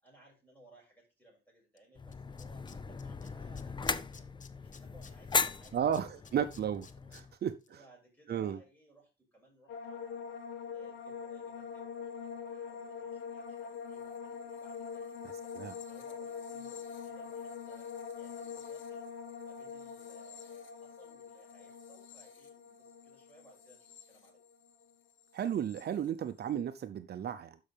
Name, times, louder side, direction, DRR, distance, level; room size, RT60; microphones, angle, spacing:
voice 1, 0.0-6.3 7.0-7.4 7.7-10.4 10.7-19.1 19.4-24.4, right 1 dB, 10° left, -2 dB, 6.6 m, -62 dB
Tools, 1.8-1.9 2.1-3.3 3.6-7.2 7.6-7.7, left 6 dB, 40° left, 0.9 m, -55 dB
sound 1, 2.0-7.3, left 4 dB, 25° left, 0.6 m, -37 dB
voice 2, 5.7-7.5 8.3-8.6 15.2-15.7 25.3-27.6, right 9 dB, 55° right, 9 dB, 0.7 m, -34 dB
sound 2, 9.7-24.9 25.2-25.8, left 6 dB, 80° left, 1.5 m, -44 dB
12.0 x 5.8 x 3.5 m, 0.27 s
cardioid pair, 100°, 20 cm